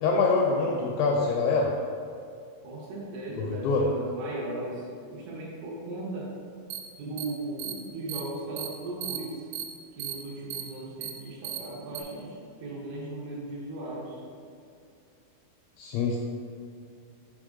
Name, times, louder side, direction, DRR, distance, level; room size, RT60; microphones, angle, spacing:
voice 1, 0.0-1.7 3.4-3.9 15.8-16.2, left 4 dB, 85° left, -1 dB, 2.6 m, -25 dB
voice 2, 2.6-6.3 7.0-9.5 10.0-12.3 12.6-14.2, right 2 dB, 70° right, -5 dB, 3.1 m, -37 dB
sound 1, 6.7-6.8 7.2-7.3 7.6-7.7 8.1-8.2 8.6-8.7 9.0-9.2 9.5-9.6 10.0-10.1 10.5-10.6 11.0-11.1 11.4-11.6 12.0-12.1, right 11 dB, 90° right, 3.4 m, -34 dB
7.0 x 5.1 x 3.8 m, 2.4 s
omnidirectional pair, 5.7 m